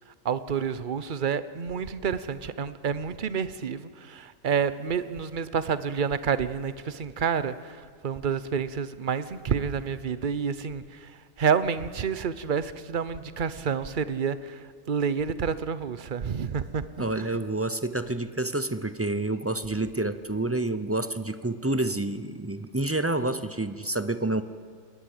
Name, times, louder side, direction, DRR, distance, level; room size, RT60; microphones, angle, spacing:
voice 1, 0.2-17.4, right 6 dB, 40° right, 14 dB, 0.9 m, -29 dB
voice 2, 17.0-24.4, right 2 dB, 20° right, 12 dB, 0.3 m, -28 dB
21.5 x 19.0 x 7.9 m, 2.1 s
omnidirectional pair, 1.5 m